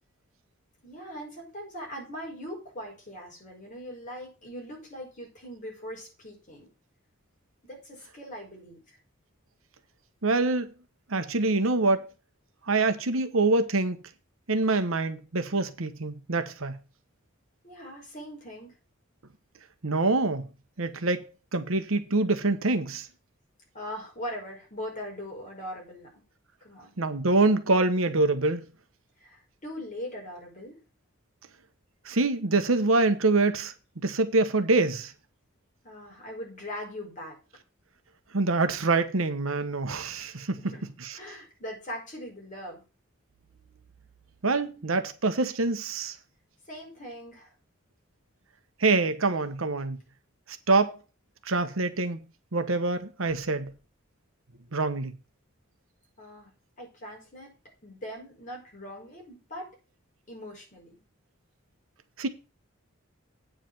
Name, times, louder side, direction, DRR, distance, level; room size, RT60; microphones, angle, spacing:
voice 1, 0.8-6.7 7.6-9.0 17.6-18.7 23.7-26.2 26.6-26.9 29.2-30.8 35.8-37.4 40.6-42.8 46.7-47.5 56.2-56.5 56.8-59.7 60.3-61.0, equal, 40° left, 5.4 m, -41 dB
voice 2, 10.2-10.7 11.1-12.1 12.7-14.0 14.5-16.8 19.8-20.5 20.8-21.2 21.5-23.1 27.0-28.7 32.0-35.1 38.3-40.6 41.0-41.1 44.4-46.1 48.8-50.0 50.7-51.0 51.5-52.2 52.5-53.7 54.7-55.1 62.2-62.3, right 3 dB, 70° right, 1.1 m, -25 dB
9.0 x 5.0 x 7.6 m
head